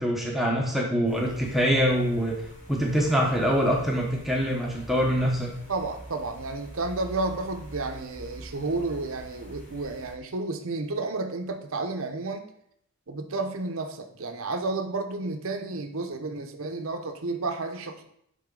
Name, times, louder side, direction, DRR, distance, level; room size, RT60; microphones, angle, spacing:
voice 1, 0.0-2.3 2.7-5.5, equal, ahead, -2 dB, 0.8 m, -24 dB
sound 1, 1.0-10.1, right 1 dB, 35° left, 1.7 m, -45 dB
voice 2, 5.7-12.4 13.1-18.0, right 3 dB, 70° right, 6 dB, 0.7 m, -31 dB
9.6 x 3.8 x 3.8 m, 0.73 s
head